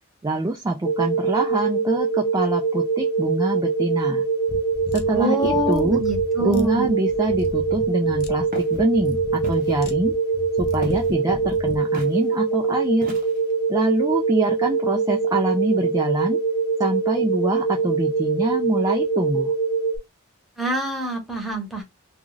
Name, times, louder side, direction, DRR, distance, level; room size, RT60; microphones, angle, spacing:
voice 1, 0.2-4.3 4.9-6.0 6.4-10.1 10.6-13.1 13.7-16.4 16.8-19.5, right 2 dB, 15° right, 0.3 m, -25 dB
sound 1, 0.8-20.0, right 4 dB, 30° left, 1.0 m, -23 dB
sound 2, 4.5-11.8, left 2 dB, 45° left, 0.5 m, -34 dB
voice 2, 5.1-6.9 20.6-21.8, right 1 dB, ahead, 0.9 m, -25 dB
Walk footsteps, 8.5-8.8 9.4-9.8 10.8-11.2 11.9-12.2 13.0-13.5, right 1 dB, 40° right, 0.7 m, -37 dB
2.4 x 2.4 x 3.1 m
head